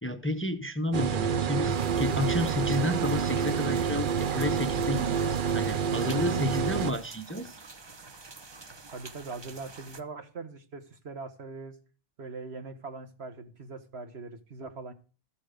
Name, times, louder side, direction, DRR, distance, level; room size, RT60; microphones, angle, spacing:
voice 1, 0.0-7.6, left 1 dB, 15° left, 0.6 m, -31 dB
sound 1, 0.9-6.9, right 7 dB, 55° right, 0.8 m, -28 dB
sound 2, 1.7-10.0, right 3 dB, 30° right, 0.7 m, -48 dB
voice 2, 8.9-11.8 12.2-14.9, right 3 dB, 75° right, 1.7 m, -41 dB
13.5 x 7.3 x 5.1 m
omnidirectional pair, 1.1 m